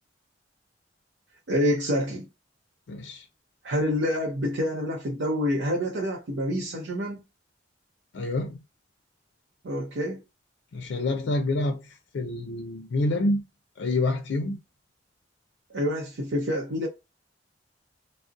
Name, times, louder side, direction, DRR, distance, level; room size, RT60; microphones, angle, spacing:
voice 1, 1.5-2.3 3.6-7.2 9.6-10.2 15.7-16.9, equal, 90° right, 0.6 m, -27 dB
voice 2, 2.9-3.2 8.1-8.6 10.7-11.8 12.1-13.4 13.8-14.6, left 2 dB, 70° left, 0.4 m, -27 dB
2.6 x 2.0 x 2.3 m
head